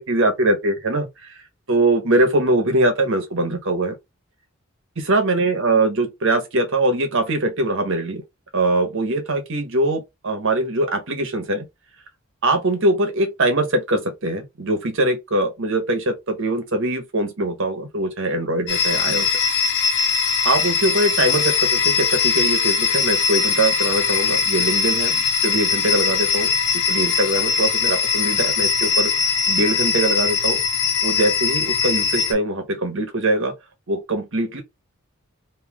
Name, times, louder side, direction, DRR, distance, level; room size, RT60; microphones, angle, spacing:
voice 1, 0.0-1.3 1.7-4.0 5.1-8.2 8.5-11.7 12.4-19.3 20.4-29.1 29.5-30.6 31.0-33.5 33.9-34.6, right 2 dB, 65° right, 1.2 m, -22 dB
sound 1, 18.7-32.3, left 5 dB, 60° left, 1.1 m, -21 dB
3.3 x 2.8 x 3.5 m
head